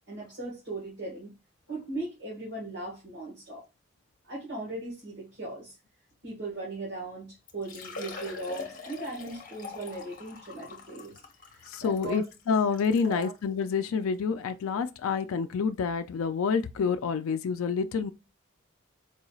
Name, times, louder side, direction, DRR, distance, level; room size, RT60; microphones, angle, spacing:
voice 1, 0.1-1.3 1.7-3.6 4.2-5.8 6.2-11.2 11.5-12.2 13.0-13.3, right 2 dB, 60° right, 1.5 m, -38 dB
Liquid, 7.0-7.1 7.5-13.4 14.1-14.2 14.6-14.7 16.4-16.5 16.6-16.7, left 4 dB, 40° left, 1.0 m, -44 dB
voice 2, 11.7-18.1, left 5 dB, 90° left, 0.4 m, -28 dB
4.6 x 3.1 x 2.3 m
head